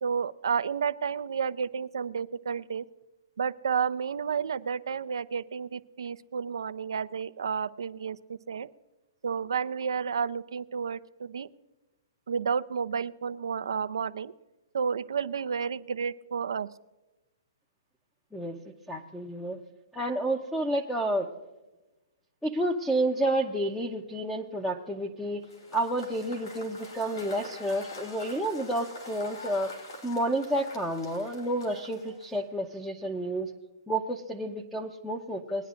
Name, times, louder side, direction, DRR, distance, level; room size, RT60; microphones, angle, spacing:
voice 1, 0.0-2.9 3.4-8.7 9.2-11.5 12.3-14.3 14.7-16.7, right 6 dB, 80° right, 12 dB, 0.5 m, -31 dB
voice 2, 18.9-19.6 19.9-21.3 22.4-25.4 25.7-29.7 30.0-33.5 33.9-35.7, right 1 dB, 5° left, 1 dB, 0.7 m, -30 dB
Cheering / Applause / Crowd, 25.4-32.5, left 2 dB, 80° left, 3.4 m, -46 dB
21.0 x 10.0 x 2.5 m, 1.1 s
hypercardioid pair, 150°, 2 cm